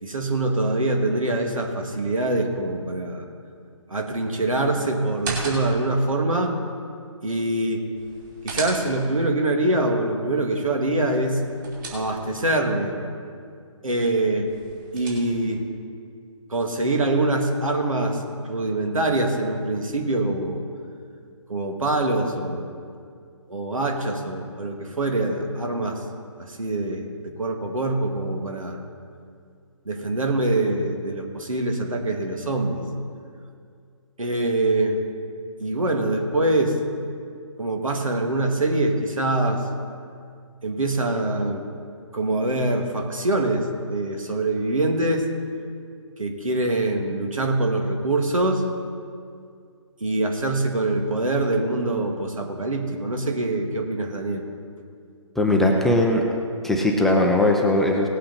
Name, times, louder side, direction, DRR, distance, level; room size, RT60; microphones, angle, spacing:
voice 1, 0.0-3.2 3.9-6.6 7.2-7.8 8.4-11.4 11.9-13.0 13.8-14.5 14.9-15.6 16.5-20.6 21.5-22.7 23.5-26.0 26.4-28.8 29.9-32.8 34.2-35.0 35.6-36.8 37.6-39.6 40.6-41.6 42.1-45.3 46.2-48.6 50.0-54.4, right 2 dB, 90° right, 3 dB, 2.0 m, -24 dB
sound 1, 5.1-6.0 8.0-9.2 11.2-12.5 14.5-15.6, right 3 dB, 40° right, 3.2 m, -35 dB
voice 2, 55.4-56.2 56.6-58.1, left 1 dB, ahead, -1 dB, 0.5 m, -19 dB
18.0 x 8.4 x 4.0 m, 2.3 s
figure-of-eight pair, 150°, 17 cm